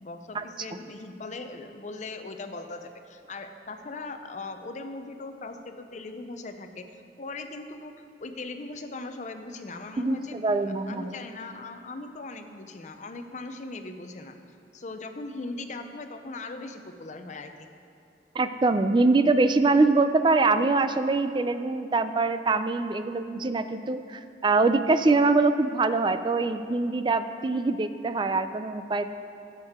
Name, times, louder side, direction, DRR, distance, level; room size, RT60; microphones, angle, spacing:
voice 1, 0.0-6.9 7.2-7.9 8.2-10.4 10.9-14.3 14.7-17.7, left 3 dB, 40° left, 7 dB, 0.6 m, -39 dB
voice 2, 10.0-11.1 18.4-29.1, right 3 dB, 25° right, 10 dB, 0.4 m, -24 dB
12.0 x 8.1 x 3.6 m, 2.6 s
head